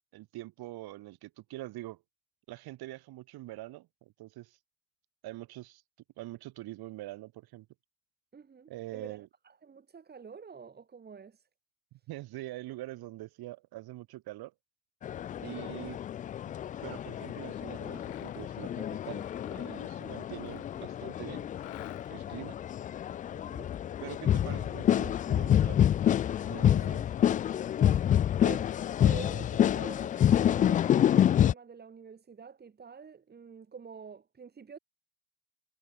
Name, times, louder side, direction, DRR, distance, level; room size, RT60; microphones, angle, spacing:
voice 1, 0.1-2.0 2.5-4.6 5.2-5.8 6.2-7.7 8.7-9.3 12.1-14.5 15.4-16.0 16.8-21.5 22.1-22.6 24.0-25.9 26.5-27.1, right 17 dB, 50° right, 6.5 m, -44 dB
voice 2, 8.3-9.2 9.4-11.4 15.4-15.8 23.3-23.7 26.9-27.4 27.8-34.8, right 6 dB, 20° right, 6.1 m, -48 dB
sound 1, 15.0-31.5, left 10 dB, 20° left, 0.3 m, -28 dB
Mechanisms, 17.8-18.6 19.1-21.0 21.5-22.4, left 26 dB, 60° left, 4.8 m, -52 dB
cardioid pair, 145°, 48 cm